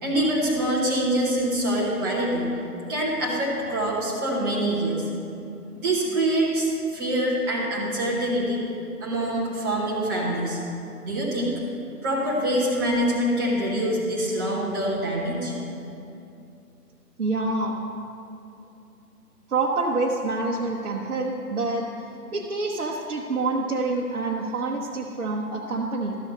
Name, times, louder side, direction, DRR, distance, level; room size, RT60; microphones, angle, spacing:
voice 1, 0.0-2.5 2.9-5.1 5.7-8.6 9.0-10.6 11.0-11.5 12.0-15.5, right 1 dB, 10° right, -6 dB, 0.9 m, -25 dB
voice 2, 17.2-17.8 19.5-22.0 22.3-26.1, right 3 dB, 55° right, -1 dB, 1.0 m, -27 dB
13.0 x 6.3 x 5.3 m, 2.7 s
figure-of-eight pair, 145°, 48 cm